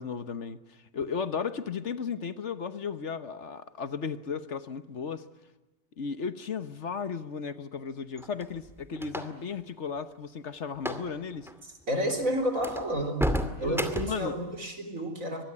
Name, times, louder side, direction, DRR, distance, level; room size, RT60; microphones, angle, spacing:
voice 1, 0.0-5.2 6.0-11.5 13.6-14.4, left 6 dB, 55° left, 1.4 m, -35 dB
sound 1, 8.2-9.5 10.7-11.1 11.3-11.5 12.1-12.2 12.6-14.3, equal, ahead, 2.2 m, -32 dB
voice 2, 11.9-13.3 13.6-15.4, right 1 dB, 70° right, 4.5 m, -30 dB
24.5 x 21.0 x 9.9 m
omnidirectional pair, 1.5 m